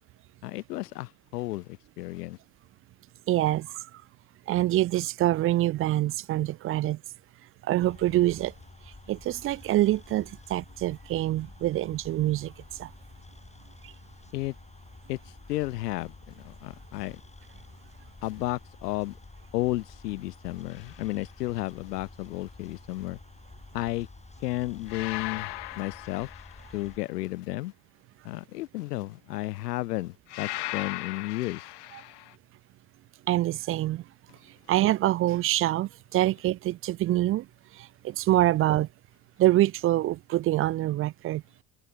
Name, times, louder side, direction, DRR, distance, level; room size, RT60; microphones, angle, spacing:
voice 1, 0.4-1.7 2.0-2.4 14.3-14.5 15.1-15.2 15.5-17.2 18.2-19.2 19.5-23.2 23.7-24.1 24.4-25.5 25.8-26.3 26.7-27.7 28.2-31.7, left 18 dB, 80° left, 0.7 m, -32 dB
voice 2, 3.3-3.7 4.5-7.0 7.7-8.5 9.1-12.5 12.8-12.9 33.3-34.0 34.7-37.5 37.8-38.9 39.4-41.4, right 15 dB, 30° right, 0.4 m, -25 dB
sound 1, 7.8-27.0, left 3 dB, 15° left, 3.3 m, -50 dB
sound 2, 20.7-21.1 24.9-27.0 30.3-32.3, left 17 dB, 55° left, 2.9 m, -38 dB
hypercardioid pair, 65°, 47 cm